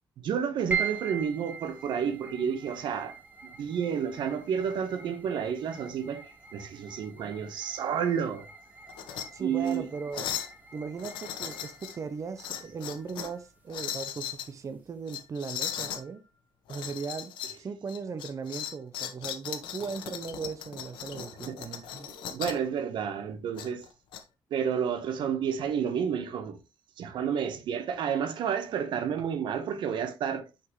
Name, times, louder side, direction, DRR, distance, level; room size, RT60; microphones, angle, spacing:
voice 1, 0.2-3.1 3.4-8.5 9.4-9.9 21.5-21.7 22.1-23.9 24.5-26.6 27.0-30.4, right 7 dB, 75° right, 1.2 m, -30 dB
sound 1, 0.7-15.2, right 6 dB, 20° right, 1.6 m, -42 dB
sound 2, 8.9-9.3 9.6-9.8 10.1-10.6 11.0-12.0 12.4-13.4 13.7-14.5 15.1-16.0 16.7-17.6 17.9-22.7 23.6-24.2, left 10 dB, 90° left, 1.0 m, -37 dB
voice 2, 9.3-10.3 10.7-16.2 16.7-17.3 17.6-22.1, right 5 dB, 40° right, 0.7 m, -38 dB
6.2 x 5.8 x 3.1 m
cardioid pair, 85°, 8 cm